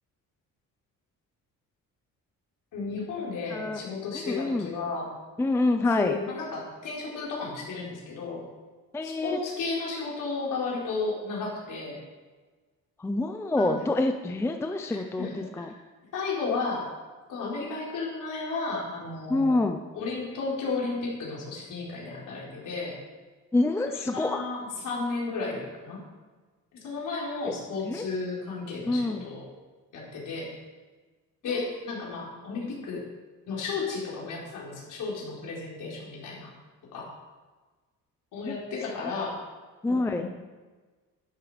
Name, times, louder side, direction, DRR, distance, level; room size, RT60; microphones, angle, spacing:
voice 1, 2.7-5.1 6.0-8.4 9.0-12.0 13.6-13.8 15.2-15.6 16.1-16.9 17.3-19.5 19.9-22.9 23.9-26.0 26.8-29.4 29.9-30.5 31.4-33.0 33.5-36.5 36.9-37.1 38.3-39.4 39.9-40.3, left 4 dB, 65° left, -4 dB, 4.6 m, -33 dB
voice 2, 4.1-4.7 5.4-6.2 8.9-9.4 13.0-15.7 19.3-19.8 23.5-24.5 27.5-27.6 27.8-28.1 28.9-29.3 38.4-38.6 39.8-40.2, left 2 dB, 10° left, 6 dB, 0.5 m, -27 dB
12.0 x 11.0 x 5.0 m, 1.3 s
cardioid pair, 175°, 34 cm